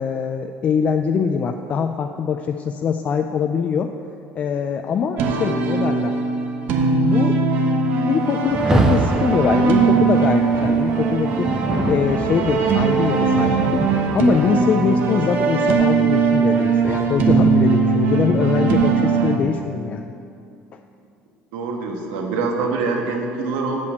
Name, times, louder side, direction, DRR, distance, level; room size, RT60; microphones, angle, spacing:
voice 1, 0.0-3.9 4.4-6.1 6.9-7.4 8.1-11.5 11.9-13.8 14.1-20.1 20.7-20.8, left 6 dB, 35° left, 6 dB, 0.4 m, -23 dB
sound 1, 5.2-19.4, right 4 dB, 50° right, 1.0 m, -20 dB
Rain, 8.4-17.5, right 2 dB, 15° right, 0.8 m, -26 dB
voice 2, 21.5-23.9, right 4 dB, 90° right, 2 dB, 1.4 m, -24 dB
8.5 x 6.8 x 8.0 m, 2.6 s
cardioid pair, 145°, 4 cm